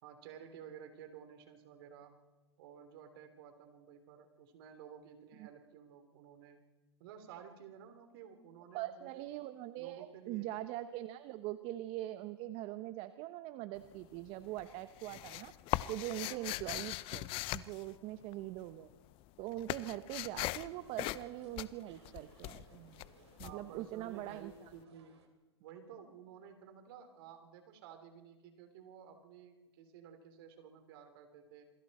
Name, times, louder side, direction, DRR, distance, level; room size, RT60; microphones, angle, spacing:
voice 1, 0.0-2.2 2.6-6.6 7.0-9.2 9.8-10.5 16.3-16.5 23.4-25.2 25.6-31.7, right 8 dB, 60° right, 7 dB, 3.4 m, -53 dB
voice 2, 8.7-15.5 15.9-18.9 19.4-23.0 23.4-24.5, right 15 dB, 40° right, 11 dB, 1.0 m, -42 dB
sound 1, 13.8-14.3 14.6-18.6 18.9-24.5, left 17 dB, 40° left, 0.7 m, -40 dB
sound 2, 20.1-25.3, right 6 dB, 75° right, 3.6 m, -65 dB
27.0 x 22.0 x 4.3 m, 1.1 s
hypercardioid pair, 120°, 14 cm